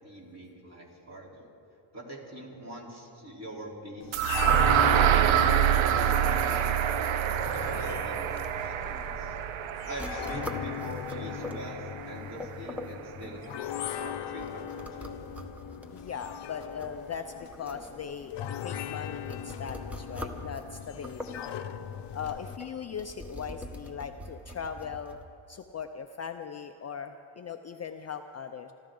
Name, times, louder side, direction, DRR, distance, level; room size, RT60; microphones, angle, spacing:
voice 1, 0.0-1.5 1.9-5.4 5.9-9.3 9.9-13.4 14.0-15.3 17.6-17.8, right 1 dB, 30° right, -3 dB, 3.7 m, -44 dB
sound 1, 4.0-22.6, left 10 dB, 55° left, 0.8 m, -39 dB
sound 2, 4.1-12.1, right 10 dB, 70° right, 0.8 m, -26 dB
sound 3, 9.8-25.2, left 1 dB, 5° right, 1.0 m, -44 dB
voice 2, 15.9-18.3 18.6-21.2 21.6-21.8 22.1-25.2 25.5-28.7, left 7 dB, 35° left, 6 dB, 0.5 m, -39 dB
27.0 x 12.5 x 3.8 m, 2.7 s
cardioid pair, 120°, 49 cm